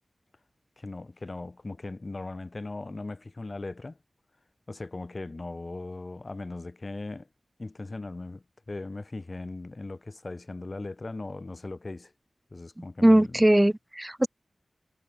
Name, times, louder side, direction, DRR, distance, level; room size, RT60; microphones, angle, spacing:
voice 1, 0.8-4.0 4.7-7.3 7.6-12.1 12.5-13.4, left 2 dB, 40° left, 3.9 m, -38 dB
voice 2, 13.0-14.3, right 1 dB, 15° right, 1.3 m, -20 dB
wide cardioid pair, 90°, 0 cm